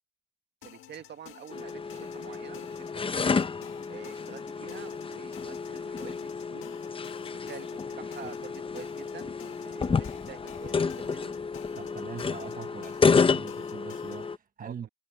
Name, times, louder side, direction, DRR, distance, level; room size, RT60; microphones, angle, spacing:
sound 1, 0.6-14.3, left 13 dB, 85° left, 1.6 m, -52 dB
voice 1, 0.6-3.4 3.9-6.8 7.2-11.4 14.6-14.9, right 9 dB, 60° right, 1.9 m, -47 dB
sound 2, 1.5-14.4, left 5 dB, 25° left, 0.7 m, -30 dB
voice 2, 11.8-14.9, right 7 dB, 45° right, 1.3 m, -43 dB
cardioid pair, 90°, 20 cm